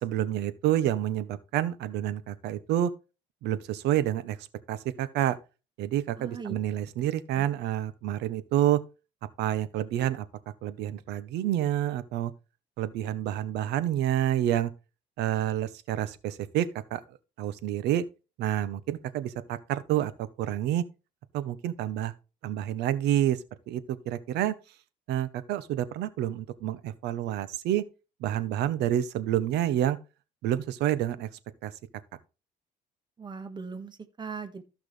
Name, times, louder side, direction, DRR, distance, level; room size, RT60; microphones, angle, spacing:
voice 1, 0.0-2.9 3.4-4.4 4.7-5.4 5.8-8.8 9.4-10.2 10.6-12.3 12.8-14.7 15.2-17.0 17.4-18.0 18.4-20.8 21.3-22.1 22.4-23.4 23.7-24.5 25.1-27.8 28.2-30.0 30.4-31.3 31.6-31.7, right 12 dB, 85° right, 1.0 m, -28 dB
voice 2, 6.2-6.5 33.2-34.6, right 5 dB, 25° right, 1.6 m, -39 dB
14.5 x 5.9 x 3.3 m
cardioid pair, 110°, 17 cm